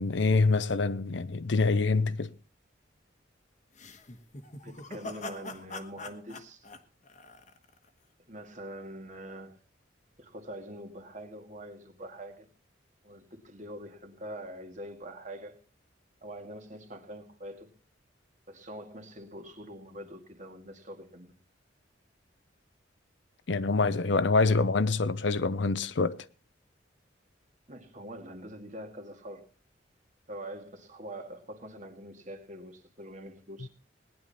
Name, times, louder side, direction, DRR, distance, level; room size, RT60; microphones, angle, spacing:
voice 1, 0.0-2.3 23.5-26.2, left 3 dB, 75° left, 0.7 m, -25 dB
sound 1, 3.7-7.9, left 2 dB, 40° left, 1.3 m, -43 dB
voice 2, 4.6-6.7 8.3-9.6 10.2-12.5 13.0-15.6 16.2-17.7 18.5-21.3 27.7-29.5 30.3-33.7, right 1 dB, 40° right, 2.0 m, -44 dB
18.5 x 10.5 x 4.2 m
head